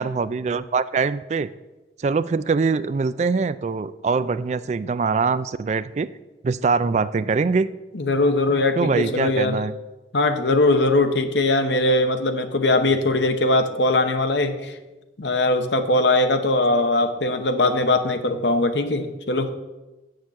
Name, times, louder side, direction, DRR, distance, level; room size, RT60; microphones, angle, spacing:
voice 1, 0.0-1.5 2.0-6.1 6.4-7.7 8.8-9.7, right 4 dB, 40° right, 15 dB, 0.3 m, -23 dB
voice 2, 7.9-9.6 10.1-14.8 15.2-19.6, left 2 dB, 80° left, 8 dB, 0.9 m, -20 dB
7.1 x 6.6 x 7.9 m, 1.1 s
head